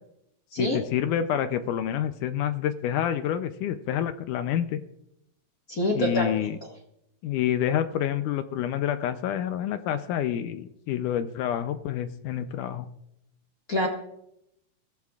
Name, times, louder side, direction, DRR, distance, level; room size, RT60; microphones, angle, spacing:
voice 1, 0.6-4.8 6.0-6.6 7.2-12.9, left 10 dB, 80° left, 10 dB, 2.1 m, -28 dB
voice 2, 5.7-6.3 13.7-13.9, left 1 dB, 35° left, -2 dB, 1.6 m, -25 dB
22.0 x 16.0 x 2.4 m, 0.79 s
omnidirectional pair, 3.8 m